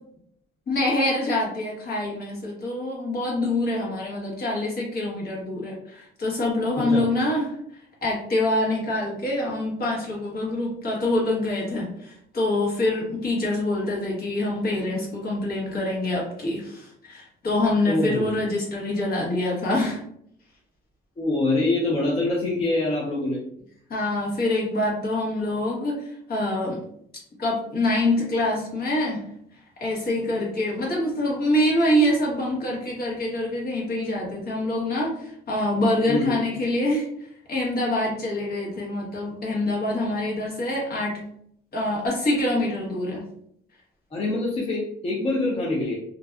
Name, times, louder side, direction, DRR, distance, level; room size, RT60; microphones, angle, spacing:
voice 1, 0.7-7.5 8.0-20.0 23.9-25.9 26.3-26.8 27.4-29.2 29.8-37.1 37.5-41.2 41.7-43.2, left 1 dB, 50° left, -3 dB, 1.2 m, -25 dB
voice 2, 6.8-7.1 17.9-18.3 21.2-23.4 36.1-36.4 44.1-46.0, left 2 dB, 30° left, -5 dB, 0.6 m, -25 dB
2.5 x 2.2 x 2.3 m, 0.70 s
cardioid pair, 90°, 20 cm